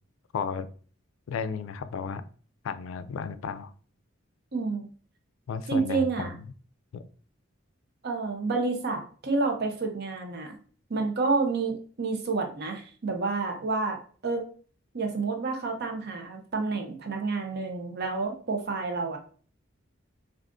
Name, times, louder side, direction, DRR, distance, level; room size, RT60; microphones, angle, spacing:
voice 1, 0.3-0.7 1.3-2.2 2.6-3.7 5.5-6.4 6.9-7.0, left 6 dB, 80° left, 12 dB, 0.3 m, -33 dB
voice 2, 4.5-4.9 5.7-6.3 8.0-10.5 10.9-14.0 14.2-14.4 14.9-19.2, right 3 dB, 55° right, 4 dB, 0.6 m, -29 dB
2.5 x 2.4 x 3.5 m, 0.43 s
head